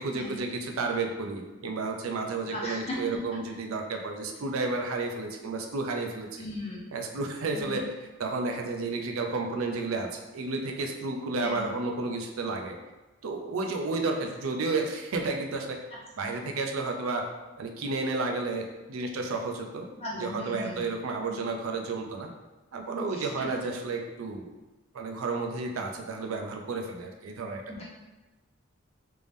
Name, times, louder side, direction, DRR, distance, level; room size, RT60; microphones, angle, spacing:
voice 1, 0.0-6.4 6.9-7.8 8.2-12.8 13.2-15.8 16.2-17.3 17.6-19.9 20.2-22.3 22.7-24.5 24.9-27.8, right 3 dB, 85° right, 3 dB, 0.5 m, -32 dB
voice 2, 2.5-3.2 4.4-4.5 6.4-6.8 7.5-7.9 11.4-11.7 15.9-16.3 20.0-20.9 22.9-23.2 23.6-23.7 27.7-27.8, left 1 dB, 30° left, -5 dB, 0.8 m, -37 dB
3.4 x 2.6 x 3.4 m, 1.1 s
head